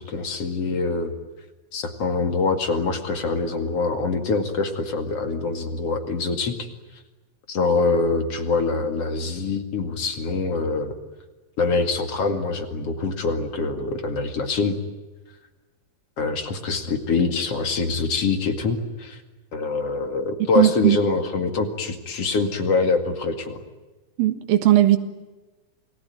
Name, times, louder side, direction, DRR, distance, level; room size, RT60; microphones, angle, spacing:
voice 1, 0.1-1.1 1.7-6.7 7.5-10.9 11.6-14.8 16.2-19.2 19.5-23.6, left 4 dB, 45° left, 3.0 m, -24 dB
voice 2, 20.6-21.0 24.2-25.0, right 14 dB, 80° right, 3.4 m, -17 dB
28.5 x 19.5 x 9.2 m
omnidirectional pair, 4.0 m